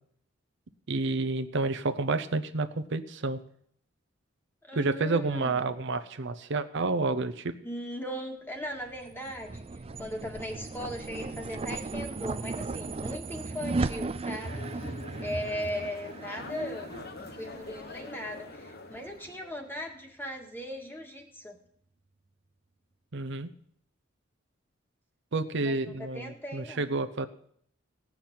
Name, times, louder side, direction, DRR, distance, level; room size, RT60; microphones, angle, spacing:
voice 1, 0.9-3.4 4.8-7.5 23.1-23.5 25.3-27.3, right 3 dB, 65° right, 10 dB, 0.8 m, -29 dB
voice 2, 4.6-5.6 7.6-9.6 10.0-14.9 15.2-21.6 25.6-26.9, equal, 10° left, 2 dB, 1.9 m, -38 dB
sound 1, 8.8-19.3, right 3 dB, 30° right, 0.5 m, -37 dB
sound 2, 14.3-19.7, left 2 dB, 55° left, 1.0 m, -44 dB
17.0 x 6.0 x 8.7 m, 0.65 s
head